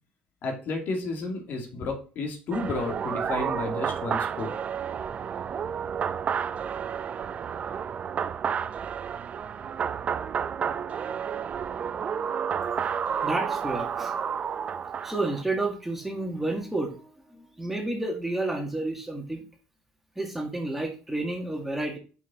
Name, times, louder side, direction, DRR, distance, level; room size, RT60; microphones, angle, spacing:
voice 1, 0.4-4.5, left 3 dB, 60° left, 3 dB, 2.3 m, -32 dB
sound 1, 2.5-15.4, right 7 dB, 40° right, 0.5 m, -31 dB
voice 2, 13.2-14.2 15.0-19.4 20.2-22.0, right 2 dB, 5° right, 2 dB, 1.9 m, -30 dB
6.3 x 5.5 x 4.3 m, 0.36 s
cardioid pair, 100°, 4 cm